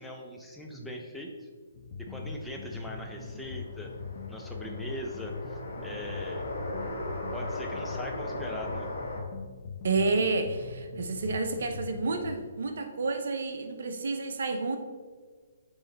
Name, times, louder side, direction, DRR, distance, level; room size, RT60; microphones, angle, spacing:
voice 1, 0.0-1.5 2.0-3.9 4.3-6.4 7.3-8.9, left 1 dB, ahead, -1 dB, 0.7 m, -40 dB
sound 1, 1.7-12.4, left 5 dB, 50° left, 0.6 m, -41 dB
sound 2, 2.4-9.2, left 1 dB, 75° left, 1.8 m, -38 dB
voice 2, 9.8-14.8, right 3 dB, 65° right, 6 dB, 0.7 m, -30 dB
7.6 x 3.2 x 4.1 m, 1.5 s
figure-of-eight pair, 135°, 0 cm